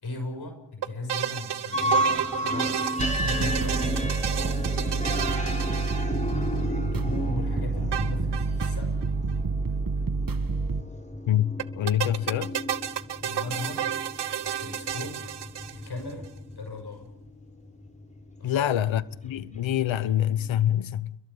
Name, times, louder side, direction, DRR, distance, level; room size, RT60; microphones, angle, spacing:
voice 1, 0.0-2.7 3.1-4.0 4.6-5.8 6.5-9.0 13.2-13.8 14.6-15.2 15.7-16.3 16.6-17.1 18.4-18.7, left 2 dB, 55° left, 6.6 m, -37 dB
sound 1, 0.8-6.6 7.9-8.8 9.0-9.1 9.3-9.4 11.6-16.1, right 10 dB, 65° right, 1.1 m, -32 dB
sound 2, 1.7-20.7, equal, 15° left, 4.5 m, -34 dB
sound 3, 3.0-10.8, right 4 dB, 45° right, 1.9 m, -28 dB
voice 2, 11.3-12.6 18.4-21.2, left 11 dB, 90° left, 1.0 m, -26 dB
30.0 x 22.5 x 5.5 m
cardioid pair, 55°, 45 cm